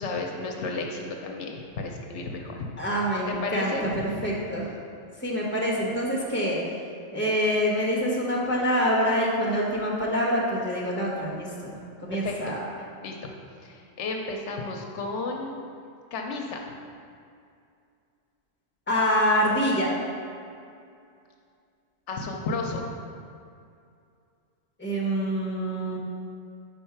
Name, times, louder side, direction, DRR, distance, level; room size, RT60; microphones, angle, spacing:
voice 1, 0.0-2.7 3.3-4.1 12.1-12.5 13.0-13.1 13.6-15.6 16.1-16.6 22.1-22.8, left 3 dB, 75° left, 1 dB, 0.9 m, -32 dB
voice 2, 2.8-4.7 5.2-6.6 7.1-11.7 12.0-12.6 18.9-19.9 24.8-26.0, equal, 10° left, -4 dB, 1.1 m, -26 dB
5.4 x 4.4 x 5.7 m, 2.4 s
omnidirectional pair, 1.2 m